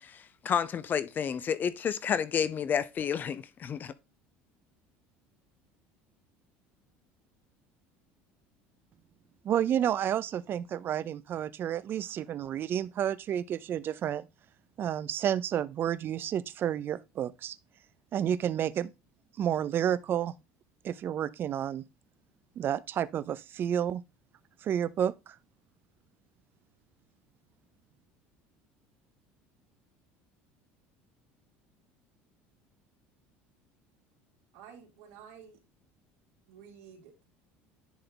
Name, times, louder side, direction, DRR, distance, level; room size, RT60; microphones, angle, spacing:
voice 1, 0.0-3.9, left 7 dB, 35° left, 0.7 m, -30 dB
voice 2, 9.4-14.3 14.8-17.6 18.1-18.9 19.4-20.3 20.8-21.8 22.6-24.0 24.6-25.4, right 10 dB, 45° right, 0.6 m, -30 dB
voice 3, 34.5-35.6 36.4-37.1, right 7 dB, 85° right, 3.2 m, -51 dB
10.0 x 3.5 x 3.8 m
supercardioid pair, 110°, 5 cm